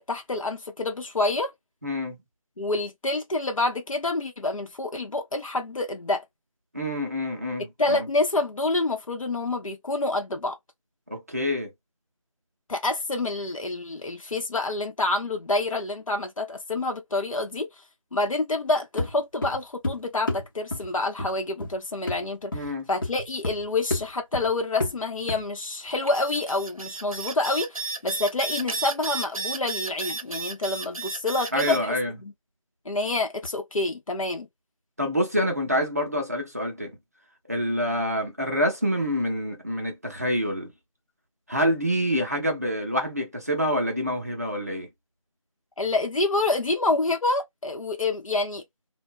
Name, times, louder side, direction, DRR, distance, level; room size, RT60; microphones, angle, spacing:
voice 1, 0.0-1.5 2.6-6.2 7.8-10.6 12.7-17.7 18.1-32.0 32.2-32.3 32.9-34.5 45.8-48.6, left 2 dB, 75° left, 0.8 m, -27 dB
voice 2, 1.8-2.2 6.7-8.1 11.1-11.7 22.5-22.9 31.5-32.1 35.0-37.0 37.5-40.7 41.5-44.9, equal, 30° right, 0.6 m, -27 dB
sound 1, 19.0-19.1 19.4-20.0 20.3-20.5 20.7-20.9 21.2-21.3 21.6-21.7 22.1-22.2 22.5-22.7 23.0-23.6 23.9-24.1 24.3-24.5 24.8-25.0 25.3-25.4, left 2 dB, 40° left, 0.9 m, -29 dB
sound 2, 26.0-31.8, right 4 dB, 90° right, 0.6 m, -33 dB
2.3 x 2.1 x 2.6 m
figure-of-eight pair, 175°, 17 cm